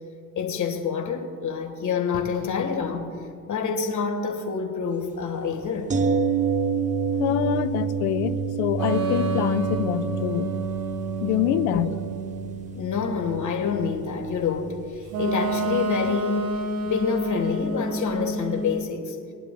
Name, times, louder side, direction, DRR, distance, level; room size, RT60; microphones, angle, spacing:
voice 1, 0.3-3.1 3.5-5.9 11.7-11.8 12.7-14.8 15.2-16.6 16.8-19.2, left 6 dB, 35° left, 4 dB, 1.6 m, -27 dB
sound 1, 5.9-15.8 16.1-16.2, right 5 dB, 15° right, 0.5 m, -29 dB
voice 2, 7.2-10.5 11.2-11.9, left 13 dB, 60° left, 13 dB, 0.7 m, -25 dB
sound 2, 8.8-12.8 15.1-18.8, right 2 dB, 75° right, 1.1 m, -29 dB
21.5 x 11.0 x 2.3 m, 2.5 s
figure-of-eight pair, 60°, 49 cm